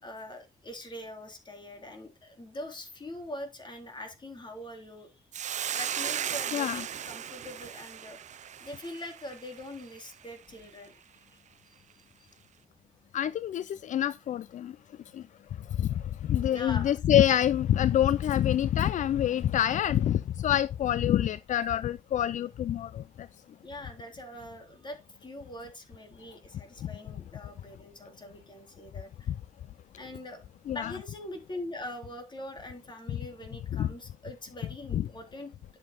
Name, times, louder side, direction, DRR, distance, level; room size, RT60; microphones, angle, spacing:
voice 1, 0.0-5.1 5.7-8.3 8.6-10.9 12.2-12.3 16.5-16.9 23.6-29.3 29.9-30.4 30.7-35.5, left 1 dB, 35° left, 3.3 m, -43 dB
Hiss, 5.3-9.8, right 9 dB, 65° right, 0.5 m, -36 dB
voice 2, 13.1-14.7 15.1-15.2 15.8-15.9 16.2-23.3 26.8-26.9 30.7-30.9 33.7-33.9 34.9-35.0, left 11 dB, 70° left, 0.4 m, -26 dB
11.0 x 7.7 x 2.2 m
cardioid pair, 90°, 13 cm